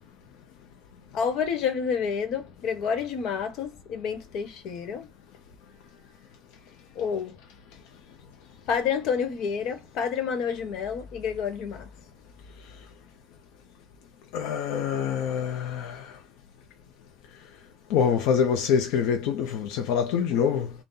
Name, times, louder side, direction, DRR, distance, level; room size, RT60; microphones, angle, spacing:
voice 1, 1.1-5.1 6.9-7.4 8.7-11.9, left 6 dB, 50° left, 1.2 m, -29 dB
voice 2, 14.3-16.1 17.9-20.7, left 7 dB, 80° left, 0.7 m, -25 dB
4.1 x 2.3 x 3.7 m
cardioid pair, 180°, 0 cm